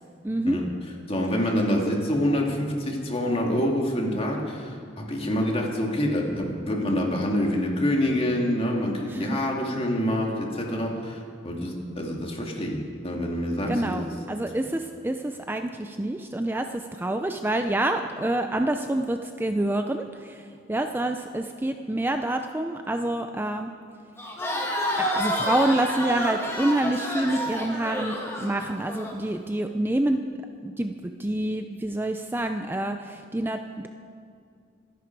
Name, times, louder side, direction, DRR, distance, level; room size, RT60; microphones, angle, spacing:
voice 1, 0.2-0.6 9.1-9.4 13.7-23.7 25.0-30.2 30.6-33.9, right 1 dB, 10° right, 6 dB, 0.5 m, -27 dB
voice 2, 1.1-14.0, equal, 30° left, 0 dB, 2.4 m, -26 dB
Crowd, 24.2-29.1, equal, 15° left, 2.0 m, -29 dB
26.0 x 11.0 x 4.7 m, 2.3 s
head